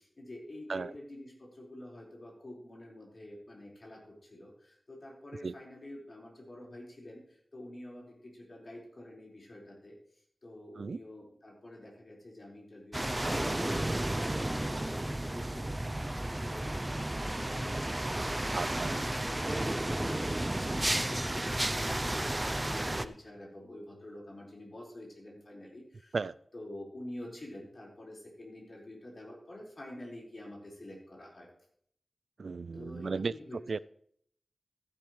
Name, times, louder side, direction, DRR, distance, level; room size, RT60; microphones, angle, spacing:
voice 1, 0.2-1.3 1.6-4.0 4.3-4.5 4.9-7.2 7.5-8.0 8.5-9.9 10.4-15.8 16.1-17.7 18.2-25.8 26.5-31.5 32.7-33.6, left 1 dB, 55° left, -2 dB, 4.8 m, -47 dB
sound 1, 12.9-23.1, right 1 dB, 20° right, 0.6 m, -32 dB
voice 2, 18.5-18.9 26.1-26.3 32.4-33.3 33.7-33.8, right 4 dB, 80° right, 18 dB, 0.3 m, -35 dB
15.0 x 10.5 x 3.2 m, 0.65 s
wide cardioid pair, 80°, 0 cm